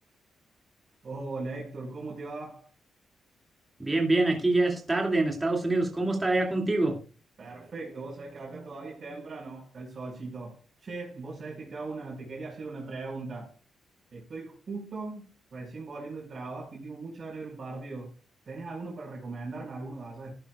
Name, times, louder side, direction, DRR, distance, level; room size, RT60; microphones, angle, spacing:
voice 1, 1.0-2.7 7.4-13.5 14.1-18.1 18.4-20.3, right 3 dB, 45° right, 5.2 m, -39 dB
voice 2, 3.8-7.0, right 2 dB, 15° right, 2.5 m, -25 dB
14.0 x 10.5 x 2.4 m
cardioid pair, 95°, 0 cm